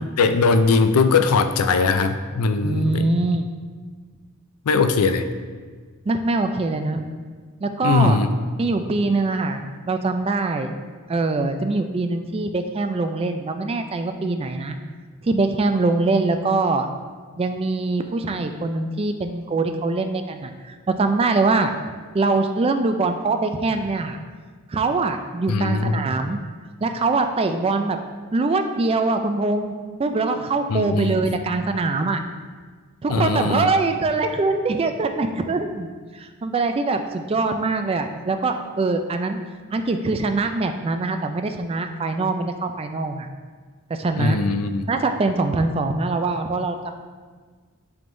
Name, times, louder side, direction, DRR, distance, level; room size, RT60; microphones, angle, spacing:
voice 1, 0.2-3.1 4.7-5.3 7.8-8.3 25.5-26.0 30.7-31.3 33.1-33.7 44.2-44.8, left 4 dB, 80° left, 9 dB, 0.4 m, -20 dB
voice 2, 2.6-3.5 6.1-7.1 7.6-8.2 8.6-9.6 9.9-10.7 11.1-14.8 15.2-16.9 17.4-21.7 22.1-24.2 24.7-26.4 26.8-28.0 28.3-29.7 30.0-32.2 33.0-39.4 39.7-43.3 43.9-44.4 44.9-47.0, right 3 dB, 25° right, 6 dB, 0.3 m, -23 dB
10.5 x 3.6 x 2.6 m, 1.5 s
head